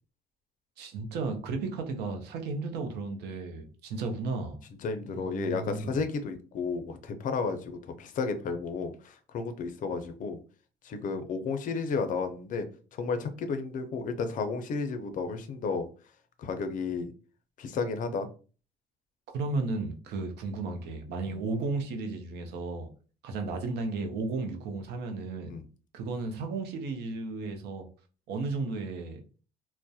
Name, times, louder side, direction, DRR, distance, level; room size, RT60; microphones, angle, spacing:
voice 1, 0.8-4.6 5.1-6.0 19.3-22.9 23.2-25.5 25.9-27.8 28.3-29.2, right 3 dB, 75° right, 0.5 m, -34 dB
voice 2, 4.8-10.4 10.8-12.7 12.9-15.9 16.4-17.1 17.6-18.3 21.3-21.4 25.5-25.6, left 4 dB, 50° left, 0.4 m, -32 dB
2.2 x 2.0 x 2.6 m
cardioid pair, 110°, 17 cm